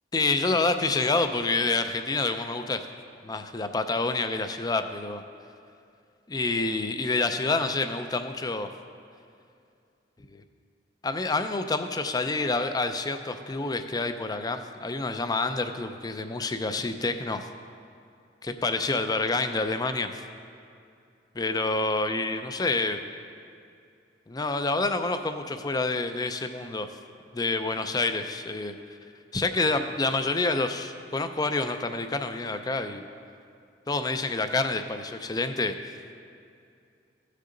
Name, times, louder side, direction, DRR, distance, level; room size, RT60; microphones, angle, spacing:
voice 1, 0.1-2.9 3.2-5.2 6.3-8.7 10.3-10.4 11.0-17.5 18.4-20.1 21.4-23.0 24.3-26.9 27.3-28.7 29.3-33.0 33.9-35.7, left 3 dB, 20° left, 8 dB, 0.5 m, -28 dB
16.0 x 6.5 x 3.9 m, 2.4 s
head